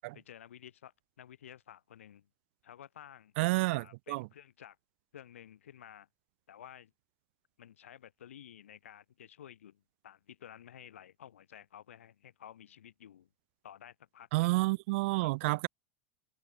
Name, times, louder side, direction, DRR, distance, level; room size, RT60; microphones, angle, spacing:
voice 1, 0.1-2.3 2.6-4.8 5.1-6.1 6.5-6.9 7.6-13.3 13.6-14.6 15.2-15.5, left 10 dB, 85° left, 1.3 m, -53 dB
voice 2, 3.4-4.3 14.3-15.7, right 24 dB, 60° right, 0.5 m, -29 dB
hypercardioid pair, 100°, 7 cm